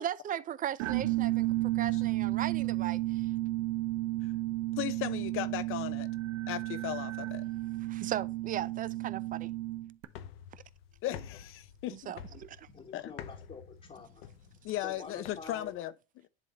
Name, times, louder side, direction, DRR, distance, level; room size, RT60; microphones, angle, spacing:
voice 1, 0.0-1.5 1.7-3.3 7.9-9.5 10.5-10.6 11.9-12.7, right 10 dB, 30° right, 0.4 m, -37 dB
sound 1, 0.8-10.0, right 17 dB, 60° right, 0.9 m, -32 dB
voice 2, 4.8-6.1 6.5-7.4 11.0-12.1 12.9-13.1 14.6-16.3, left 14 dB, 45° left, 0.7 m, -37 dB
sound 2, 10.1-15.7, left 8 dB, 80° left, 0.7 m, -49 dB
voice 3, 12.6-15.7, left 5 dB, 25° left, 1.3 m, -48 dB
10.5 x 3.6 x 2.8 m
supercardioid pair, 100°, 29 cm